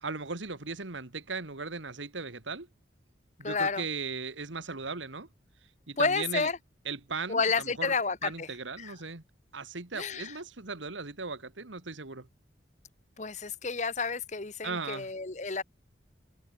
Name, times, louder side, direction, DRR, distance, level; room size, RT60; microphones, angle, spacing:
voice 1, 0.0-2.7 3.4-5.3 5.9-6.5 6.9-7.9 8.2-9.2 9.5-12.3 14.6-15.1, right 4 dB, 85° right, 2.0 m, -37 dB
voice 2, 3.4-3.8 6.0-6.6 7.3-8.5 8.8-8.9 9.9-10.3 13.2-15.6, left 4 dB, 40° left, 1.1 m, -30 dB
head